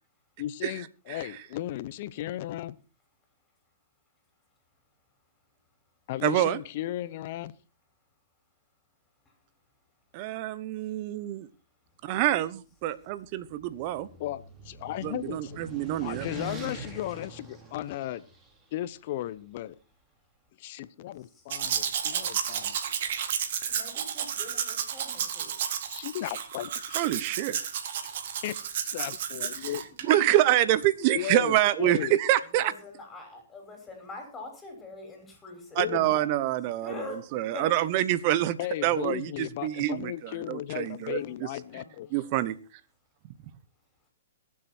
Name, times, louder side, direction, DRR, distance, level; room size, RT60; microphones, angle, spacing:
voice 1, 0.4-2.8 6.1-7.5 14.2-15.6 16.0-18.2 18.7-19.7 20.6-22.6 25.9-27.0 28.4-28.6 28.9-29.8 31.1-32.1 35.8-36.2 38.6-42.1, left 13 dB, 50° left, 16 dB, 0.9 m, -35 dB
voice 2, 6.2-6.6 10.1-11.5 12.1-14.1 15.0-16.3 26.9-27.6 30.0-32.7 35.8-41.2 42.1-42.5, right 14 dB, 45° right, 16 dB, 1.1 m, -26 dB
sound 1, 13.2-18.5, right 2 dB, 15° right, 3.3 m, -43 dB
Domestic sounds home sounds, 21.5-30.2 30.8-30.9, right 8 dB, 60° right, 1.9 m, -32 dB
voice 3, 23.7-25.5 28.0-28.2 29.6-30.5 32.6-36.3 36.8-37.7 41.2-41.3 41.6-41.8, left 2 dB, 15° left, 3 dB, 5.9 m, -44 dB
22.5 x 7.5 x 4.4 m, 0.34 s
hypercardioid pair, 130°, 0 cm